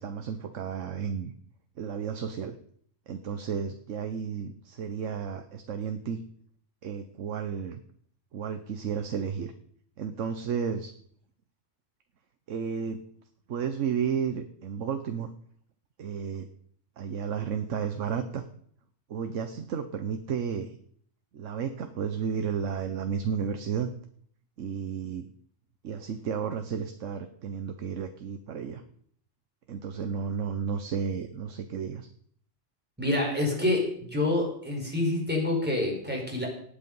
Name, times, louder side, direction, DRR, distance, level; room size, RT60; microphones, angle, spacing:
voice 1, 0.0-1.3 1.8-2.6 3.1-6.2 6.8-7.8 8.3-9.5 10.0-10.9 12.5-13.0 13.5-15.3 16.0-16.5 17.0-18.4 19.1-20.8 21.3-23.9 24.6-25.3 25.8-28.8 29.7-32.1, right 7 dB, 75° right, 8 dB, 1.2 m, -32 dB
voice 2, 33.0-36.5, left 2 dB, 10° right, -2 dB, 4.7 m, -27 dB
18.0 x 8.7 x 5.4 m, 0.62 s
omnidirectional pair, 1.3 m